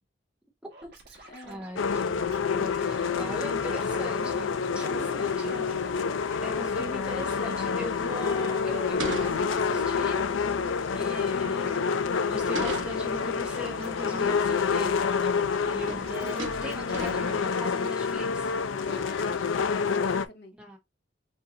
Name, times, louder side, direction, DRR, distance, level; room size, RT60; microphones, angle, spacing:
voice 1, 0.6-2.3 2.6-4.5 4.7-5.7 6.4-10.2 10.9-15.1 15.6-18.5 20.6-20.8, equal, 5° right, 1.0 m, -40 dB
Scratching (performance technique), 0.7-2.4 2.7-3.3 3.7-4.5 4.8-19.8 20.0-20.1, right 2 dB, 60° right, 1.6 m, -51 dB
voice 2, 1.2-1.7 4.8-5.8 18.9-20.5, left 1 dB, 60° left, 1.2 m, -44 dB
sound 1, 1.8-20.3, left 5 dB, 85° left, 0.5 m, -28 dB
sound 2, 8.9-9.9 12.2-13.2 14.9-15.0 15.3-15.6 15.8-16.1 16.4-17.4, right 2 dB, 75° right, 1.2 m, -38 dB
5.4 x 2.8 x 2.6 m
head